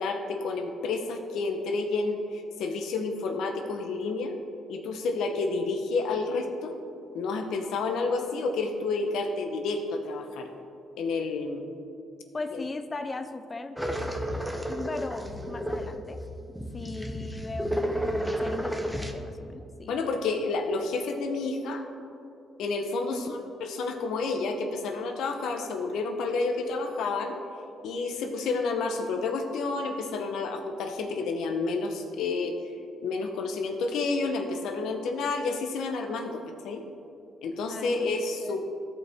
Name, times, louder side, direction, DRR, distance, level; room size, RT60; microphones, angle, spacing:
voice 1, 0.0-4.4 4.7-6.8 7.1-10.5 11.0-11.6 12.5-12.6 19.9-21.8 22.6-27.4 27.8-32.8 33.0-36.8 37.4-38.6, left 3 dB, 80° left, 4 dB, 0.9 m, -30 dB
voice 2, 12.3-13.8 14.7-16.2 16.7-20.0 23.1-23.4 37.7-38.6, left 3 dB, 30° left, 8 dB, 0.4 m, -38 dB
sound 1, 13.8-19.1, equal, ahead, 0.8 m, -32 dB
15.0 x 5.3 x 3.6 m, 2.7 s
cardioid pair, 90°, 0 cm